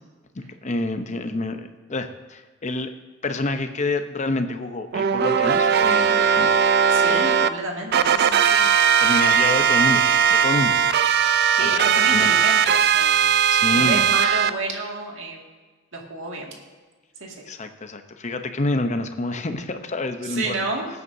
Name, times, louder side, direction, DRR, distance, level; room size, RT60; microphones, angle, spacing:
voice 1, 0.3-2.9 3.2-6.5 7.0-7.3 9.0-10.8 11.6-12.3 13.5-14.1 17.5-20.6, left 2 dB, 35° left, 8 dB, 0.8 m, -28 dB
sound 1, 4.9-7.5 7.9-14.5, right 7 dB, 55° right, 0.4 m, -18 dB
voice 2, 6.9-8.7 11.5-13.4 13.7-15.4 15.9-16.5 17.2-17.4 20.2-20.9, right 3 dB, 70° right, 0 dB, 2.1 m, -30 dB
17.5 x 9.4 x 2.7 m, 1.4 s
head